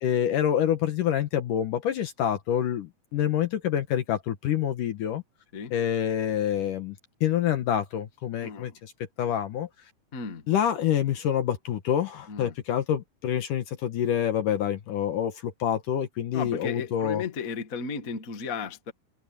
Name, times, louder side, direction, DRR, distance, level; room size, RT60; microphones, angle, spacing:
voice 1, 0.0-5.2 5.7-8.9 9.2-9.7 10.5-17.2, left 10 dB, 65° left, 2.4 m, -27 dB
voice 2, 8.4-8.8 10.1-10.5 12.3-12.5 16.3-18.9, left 5 dB, 40° left, 1.2 m, -34 dB
open air
omnidirectional pair, 4.7 m